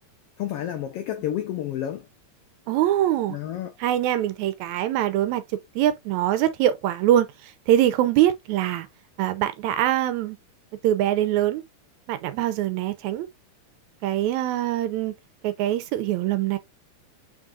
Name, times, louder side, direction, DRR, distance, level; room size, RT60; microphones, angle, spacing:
voice 1, 0.4-2.0 3.3-3.7, left 11 dB, 85° left, 1.3 m, -30 dB
voice 2, 2.7-3.4 3.8-5.4 5.8-8.9 9.2-10.4 10.8-11.6 12.1-13.3 14.0-15.1 15.4-16.6, right 12 dB, 80° right, 1.9 m, -23 dB
5.2 x 3.8 x 2.4 m
omnidirectional pair, 3.4 m